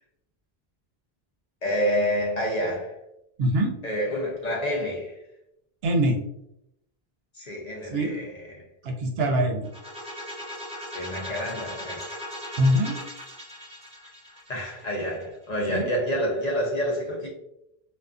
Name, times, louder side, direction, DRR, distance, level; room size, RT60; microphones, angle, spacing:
voice 1, 1.6-2.9 3.8-5.1 7.4-8.6 10.9-12.1 14.5-17.3, equal, 50° left, 0.6 m, -28 dB
voice 2, 3.4-3.7 5.8-6.2 7.9-8.1 8.8-9.7 12.6-13.0 15.7-15.9, equal, 75° right, 0.8 m, -23 dB
sound 1, 9.6-15.4, left 1 dB, 5° right, 0.6 m, -38 dB
2.3 x 2.3 x 2.4 m
omnidirectional pair, 1.0 m